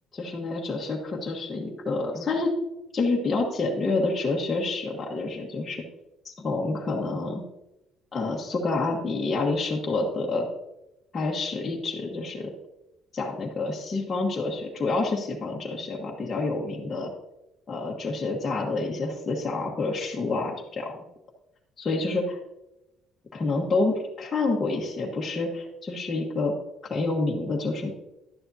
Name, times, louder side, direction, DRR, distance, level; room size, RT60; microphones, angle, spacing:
voice 1, 0.1-2.5 2.9-5.8 6.2-7.4 8.1-10.5 11.1-12.5 13.1-17.1 17.7-21.0 21.8-22.4 23.3-26.6 26.9-27.9, left 3 dB, 25° left, -3 dB, 1.2 m, -28 dB
11.5 x 9.9 x 2.7 m, 0.94 s
cardioid pair, 155°, 0 cm